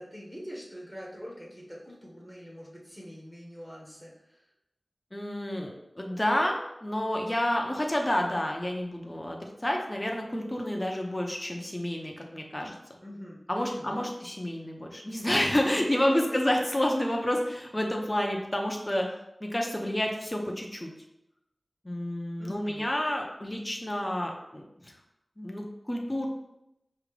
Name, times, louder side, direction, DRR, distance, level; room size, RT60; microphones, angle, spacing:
voice 1, 0.0-4.4 13.0-14.1 15.5-16.4 22.4-22.8, equal, 10° right, -3 dB, 1.1 m, -43 dB
voice 2, 5.1-12.7 13.5-19.1 19.4-20.9 21.8-24.9 25.4-26.3, left 1 dB, 20° left, 1 dB, 0.7 m, -29 dB
5.0 x 2.8 x 3.2 m, 0.84 s
wide cardioid pair, 70°, 0 cm